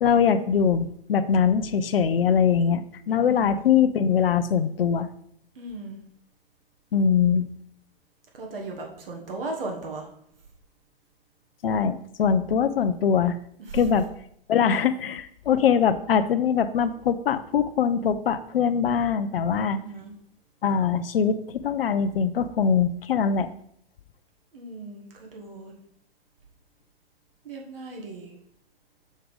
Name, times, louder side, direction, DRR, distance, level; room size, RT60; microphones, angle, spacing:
voice 1, 0.0-5.1 6.9-7.5 11.6-13.4 13.7-14.1 14.5-19.8 20.6-23.5, left 7 dB, 75° left, 11 dB, 0.5 m, -22 dB
voice 2, 3.1-3.5 5.5-6.0 8.3-10.1 13.6-13.8 19.6-20.1 24.5-25.7 27.4-28.3, right 3 dB, 70° right, 0 dB, 1.4 m, -37 dB
6.3 x 3.3 x 5.1 m, 0.68 s
figure-of-eight pair, 105°, 29 cm